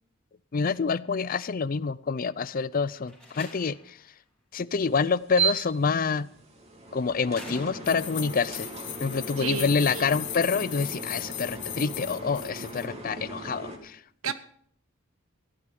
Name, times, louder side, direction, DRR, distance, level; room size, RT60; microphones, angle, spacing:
voice 1, 0.5-4.0 4.5-6.3 6.9-8.7 9.0-14.0 14.3-14.4, left 5 dB, 40° left, 18 dB, 0.5 m, -27 dB
Slam, 3.0-4.0 5.5-5.9 7.3-8.3, left 1 dB, 5° left, 2.9 m, -45 dB
sound 1, 4.7-13.8, right 6 dB, 30° right, 2.4 m, -36 dB
sound 2, 7.8-12.9, left 13 dB, 55° left, 1.0 m, -38 dB
voice 2, 9.4-10.1 14.2-14.3, right 6 dB, 80° right, 12 dB, 1.0 m, -32 dB
15.0 x 11.0 x 5.4 m, 0.62 s
head